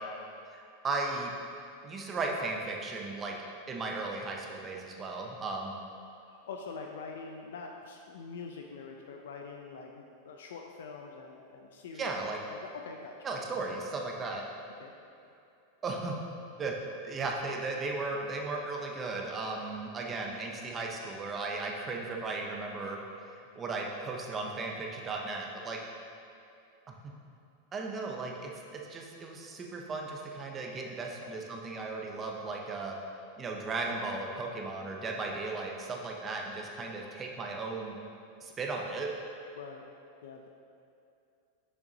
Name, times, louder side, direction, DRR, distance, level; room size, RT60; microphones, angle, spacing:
voice 1, 0.5-1.3 1.8-3.3 3.7-5.7 12.0-12.4 13.2-14.4 15.8-16.2 16.6-16.7 17.0-23.0 23.6-25.8 26.9-27.1 27.7-33.0 33.4-38.0 38.4-39.1, right 3 dB, 15° right, 0 dB, 0.5 m, -36 dB
voice 2, 6.2-13.1 14.3-14.4 14.8-14.9 31.2-31.4 39.6-39.8 40.2-40.5, left 4 dB, 90° left, 2 dB, 0.5 m, -45 dB
6.4 x 5.9 x 2.7 m, 2.6 s
supercardioid pair, 175°, 0 cm